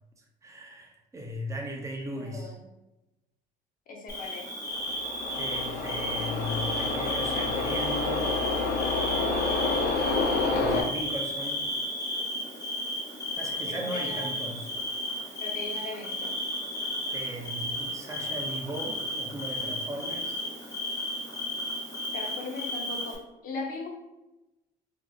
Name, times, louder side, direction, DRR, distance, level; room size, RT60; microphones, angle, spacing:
voice 1, 0.4-2.6 5.3-8.4 10.5-11.6 13.4-14.7 17.1-20.4, equal, 20° right, 1 dB, 0.7 m, -37 dB
voice 2, 2.1-2.6 3.9-4.5 13.7-14.3 15.4-16.4 22.1-23.9, left 3 dB, 55° left, 0 dB, 0.9 m, -38 dB
Bird / Cricket, 4.1-23.2, left 1 dB, 20° left, 1.3 m, -33 dB
sound 1, 4.7-10.8, left 3 dB, 80° left, 0.7 m, -29 dB
4.2 x 2.7 x 2.4 m, 0.97 s
cardioid pair, 110°, 17 cm